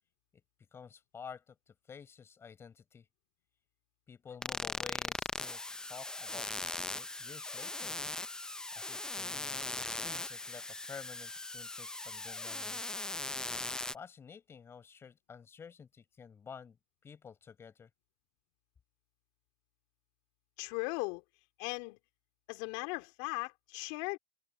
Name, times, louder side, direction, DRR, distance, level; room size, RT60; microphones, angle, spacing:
voice 1, 0.7-3.1 4.1-8.0 8.7-12.8 13.7-16.8 17.0-17.9, left 6 dB, 25° left, 4.9 m, -51 dB
sound 1, 4.4-14.0, left 2 dB, 5° left, 0.5 m, -39 dB
voice 2, 20.6-21.2 21.6-22.0 22.5-24.2, left 29 dB, 60° left, 3.4 m, -38 dB
supercardioid pair, 115°, 10 cm